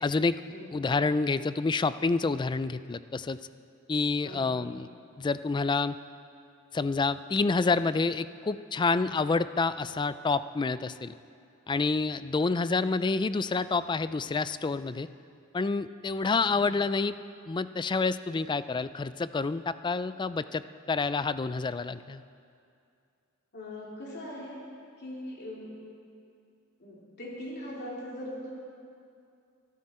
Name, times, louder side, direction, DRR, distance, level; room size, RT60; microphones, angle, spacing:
voice 1, 0.0-0.4 0.7-3.4 3.9-4.9 5.2-6.0 6.7-11.1 11.7-15.1 15.5-17.2 17.5-22.2, left 4 dB, 20° left, 14 dB, 0.3 m, -28 dB
voice 2, 4.2-4.7 12.4-12.5 23.5-24.6 25.0-25.7 26.8-28.5, left 1 dB, 50° left, -5 dB, 2.9 m, -41 dB
23.5 x 12.5 x 4.3 m, 2.4 s
head